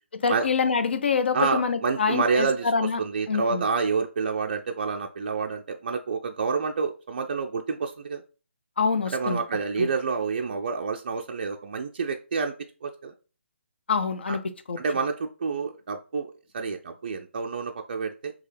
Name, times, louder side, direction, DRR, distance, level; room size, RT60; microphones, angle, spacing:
voice 1, 0.1-3.0 3.3-3.6 8.8-9.4 9.8-9.9 13.9-14.4 14.7-14.8, left 5 dB, 55° left, 0.5 m, -25 dB
voice 2, 1.3-8.2 9.1-12.5 12.8-13.1 14.3-14.4 14.8-18.3, right 5 dB, 45° right, 0.3 m, -28 dB
4.4 x 2.8 x 3.3 m
figure-of-eight pair, 140°, 7 cm